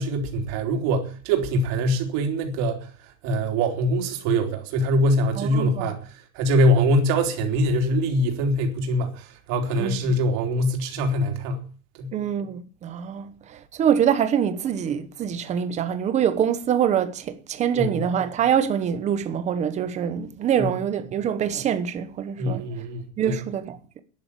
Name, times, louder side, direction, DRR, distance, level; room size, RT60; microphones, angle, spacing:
voice 1, 0.0-11.6 11.9-12.1 17.7-18.0 20.6-20.7 22.4-23.4, equal, 40° right, 3.5 m, -23 dB
voice 2, 5.4-5.9 9.8-10.0 12.1-22.6 23.2-24.0, right 8 dB, 15° right, 1.0 m, -25 dB
12.0 x 11.0 x 8.4 m
supercardioid pair, 175°, 42 cm